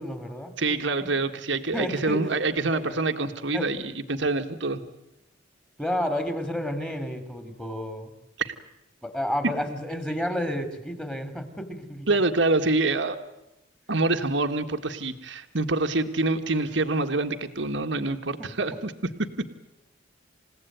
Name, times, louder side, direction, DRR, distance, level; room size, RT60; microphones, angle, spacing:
voice 1, 0.0-0.5 1.7-2.3 2.7-3.0 3.5-3.7 5.8-8.1 9.0-12.1, equal, 5° left, 9 dB, 3.3 m, -31 dB
voice 2, 0.6-4.8 8.4-8.5 12.1-13.2 13.9-18.9 19.2-19.3, right 3 dB, 70° right, 7 dB, 1.8 m, -26 dB
29.0 x 17.0 x 9.4 m, 0.91 s
head